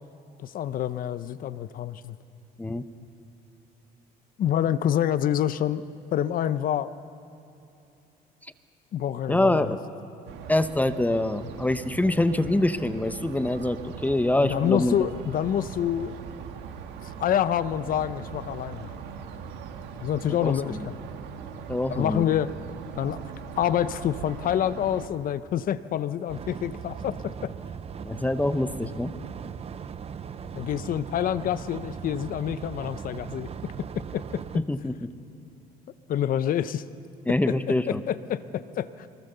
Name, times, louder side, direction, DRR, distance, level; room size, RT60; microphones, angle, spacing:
voice 1, 0.4-2.2 4.4-6.9 8.9-9.7 14.4-16.2 17.0-18.9 20.0-21.0 21.9-22.5 23.0-23.2 23.6-27.5 30.5-33.5 34.1-34.4 36.1-36.8 37.3-39.1, left 10 dB, 55° left, 14 dB, 0.8 m, -27 dB
voice 2, 9.3-9.8 10.5-15.0 20.4-20.8 21.7-22.2 28.0-29.1 34.5-35.1 37.3-38.0, left 1 dB, 10° left, 11 dB, 0.8 m, -25 dB
sound 1, 10.3-25.1, right 7 dB, 85° right, 1.9 m, -40 dB
sound 2, 26.3-34.6, right 7 dB, 35° right, 0.8 m, -38 dB
24.0 x 21.5 x 6.9 m, 2.9 s
cardioid pair, 110°, 17 cm